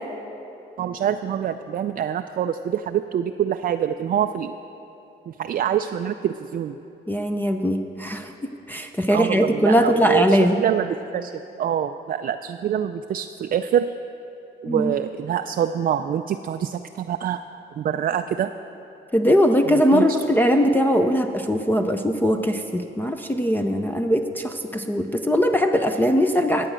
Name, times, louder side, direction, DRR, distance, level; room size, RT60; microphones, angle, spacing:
voice 1, 0.8-4.5 5.3-6.7 9.1-11.3 11.6-13.9 14.6-17.4 17.8-18.5 19.7-20.0, right 9 dB, 45° right, 7 dB, 0.4 m, -25 dB
voice 2, 7.1-10.6 14.7-14.9 19.1-26.7, equal, 10° left, 6 dB, 0.6 m, -20 dB
14.0 x 8.7 x 6.3 m, 2.9 s
cardioid pair, 90°, 20 cm